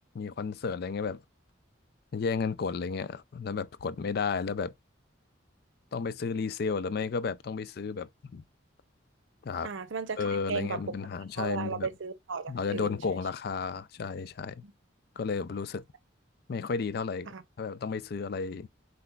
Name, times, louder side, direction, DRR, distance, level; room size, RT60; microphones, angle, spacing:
voice 1, 0.1-1.2 2.1-4.7 5.9-8.4 9.4-9.7 10.2-11.9 12.5-14.6 15.2-15.8 16.5-17.3 17.6-18.7, left 5 dB, 50° left, 0.4 m, -33 dB
voice 2, 9.6-10.2 10.5-10.8 11.4-13.0 14.6-14.7 17.3-17.4, right 5 dB, 75° right, 0.6 m, -35 dB
5.9 x 3.3 x 2.3 m
head